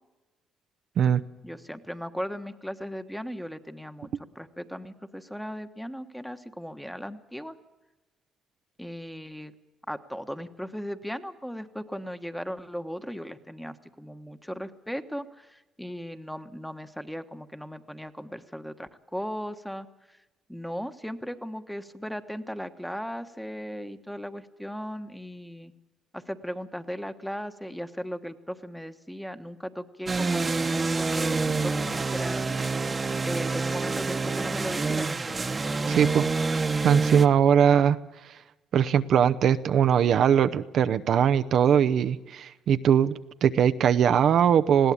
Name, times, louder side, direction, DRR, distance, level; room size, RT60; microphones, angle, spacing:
voice 1, 1.4-4.1 4.3-7.6 8.8-9.5 9.9-20.2 20.5-25.7 26.1-32.5 33.2-35.4, equal, 5° left, 9 dB, 1.3 m, -37 dB
sound 1, 30.1-37.3, right 4 dB, 30° right, 1.2 m, -27 dB
voice 2, 35.9-36.2 36.5-38.0 38.7-43.1 43.4-44.9, right 8 dB, 65° right, 10 dB, 0.7 m, -21 dB
20.5 x 16.0 x 8.6 m, 1.1 s
supercardioid pair, 75°, 0 cm